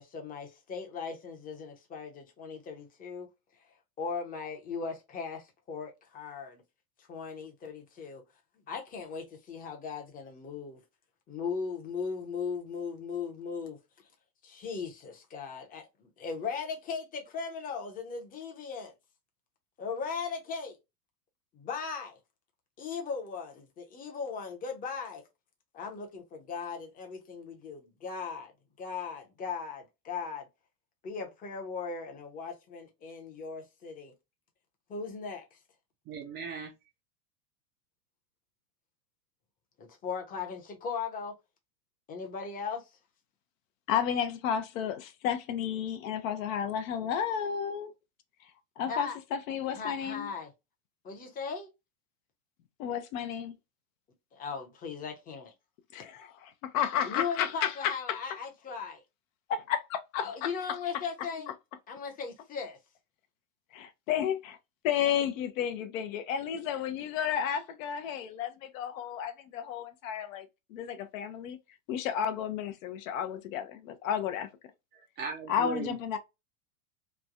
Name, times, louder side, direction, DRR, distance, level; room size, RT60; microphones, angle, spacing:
voice 1, 0.0-3.3 4.0-6.6 7.1-8.2 8.7-10.8 11.3-13.8 14.4-18.9 19.8-20.8 21.5-22.2 22.8-25.2 25.7-28.5 28.8-30.5 31.0-34.1 34.9-35.5 39.8-41.3 42.1-42.8 48.8-49.2 49.7-50.5 51.0-51.7 54.3-55.5 57.0-59.0 60.2-61.5 61.9-62.8, left 5 dB, 20° left, 0.7 m, -38 dB
voice 2, 36.1-36.7 75.2-75.9, right 6 dB, 25° right, 0.4 m, -37 dB
voice 3, 43.9-47.9 48.8-50.3 52.8-53.5 55.9-58.2 59.5-60.5 64.1-64.4 64.8-71.6 71.9-74.5 75.5-76.2, left 8 dB, 60° left, 0.7 m, -32 dB
3.2 x 2.2 x 2.4 m
hypercardioid pair, 130°, 46 cm